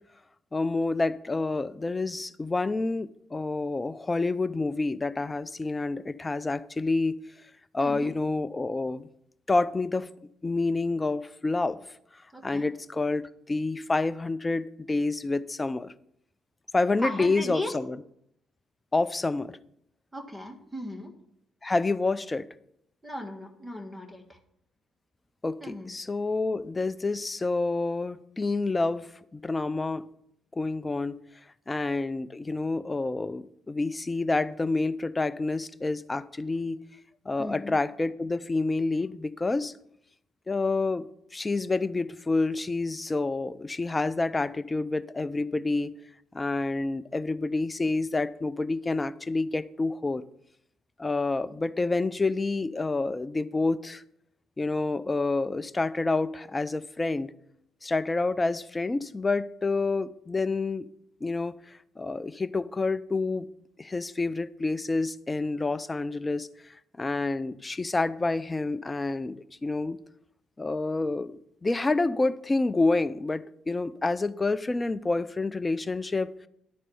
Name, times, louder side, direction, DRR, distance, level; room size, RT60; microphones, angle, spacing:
voice 1, 0.5-7.2 7.7-9.1 9.5-10.1 10.4-11.8 12.4-15.9 16.7-18.0 18.9-19.6 21.6-22.4 25.4-30.0 30.5-31.2 31.7-36.8 37.3-39.7 40.5-41.1 41.3-45.9 46.3-50.2 51.0-54.0 54.6-57.3 57.8-60.9 61.2-63.5 63.8-70.0 70.6-76.5, left 3 dB, 20° left, 14 dB, 0.5 m, -28 dB
voice 2, 7.8-8.1 12.3-12.7 17.0-17.8 20.1-21.1 23.0-24.4 25.6-25.9 37.4-37.8 51.5-51.6, left 1 dB, 10° right, 3 dB, 1.7 m, -37 dB
11.5 x 4.2 x 7.0 m, 0.73 s
cardioid pair, 90°, 0 cm